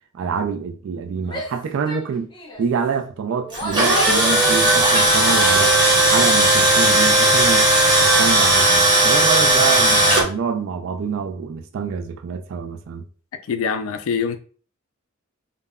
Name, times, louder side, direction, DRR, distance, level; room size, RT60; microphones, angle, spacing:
voice 1, 0.1-2.3 2.6-5.7 6.1-7.7 8.0-13.0, right 6 dB, 65° right, 0.3 m, -26 dB
Female speech woman speaking / Yell, 1.3-1.6 1.9-2.0 2.3-2.6 3.3-5.8, left 1 dB, 20° left, 0.5 m, -30 dB
Tools, 3.5-10.2, right 1 dB, 25° right, 0.9 m, -16 dB
voice 2, 13.5-14.4, left 6 dB, 80° left, 0.4 m, -24 dB
2.1 x 2.1 x 3.5 m
head